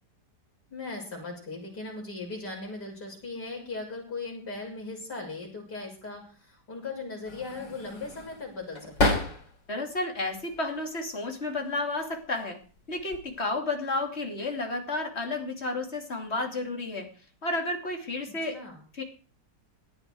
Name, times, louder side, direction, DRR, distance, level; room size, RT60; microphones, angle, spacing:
voice 1, 0.7-9.3 18.5-18.8, left 3 dB, 65° left, -2 dB, 7.4 m, -38 dB
sound 1, 7.2-9.7 10.2-11.0 11.9-12.3 12.6-13.4, left 2 dB, 85° left, 4.2 m, -31 dB
voice 2, 9.7-12.6 12.9-17.1 17.4-18.6 18.9-19.0, left 2 dB, 35° left, 4 dB, 3.1 m, -31 dB
18.0 x 11.5 x 4.8 m, 0.39 s
omnidirectional pair, 1.9 m